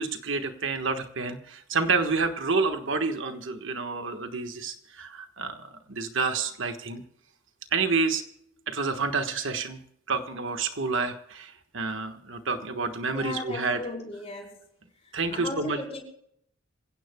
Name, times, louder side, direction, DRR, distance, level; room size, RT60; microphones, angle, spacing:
voice 1, 0.0-7.0 7.7-8.2 8.7-9.8 10.1-13.8 15.1-15.8, right 4 dB, 60° right, 1.4 m, -29 dB
voice 2, 13.1-14.6 15.3-16.0, left 2 dB, 30° left, 4.3 m, -36 dB
27.5 x 16.5 x 2.3 m
head